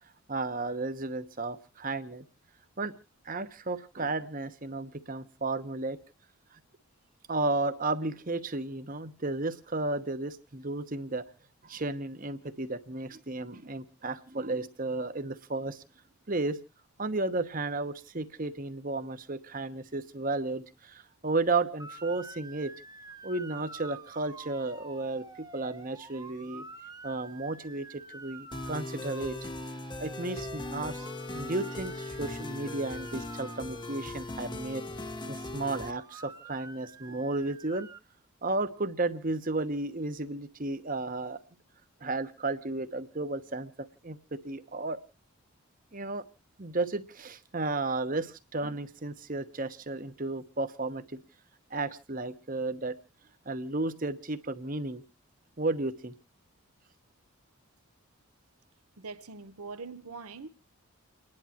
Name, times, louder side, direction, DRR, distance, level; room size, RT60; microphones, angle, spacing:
voice 1, 0.3-2.2 2.8-2.9 3.2-6.0 6.5-6.6 7.3-11.2 11.6-15.8 16.3-16.6 17.0-22.7 23.2-26.6 27.0-29.5 30.0-31.1 31.3-34.8 35.3-37.9 38.4-41.4 42.0-45.0 45.9-46.3 46.6-51.2 51.7-53.0 53.5-55.0 55.6-56.2, right 2 dB, 35° right, 1.0 m, -33 dB
Motor vehicle (road) / Siren, 21.8-38.0, right 3 dB, 15° right, 0.8 m, -49 dB
sound 1, 28.5-35.9, left 2 dB, 20° left, 0.8 m, -39 dB
voice 2, 59.0-60.5, right 4 dB, 85° right, 1.0 m, -42 dB
30.0 x 11.0 x 2.9 m
head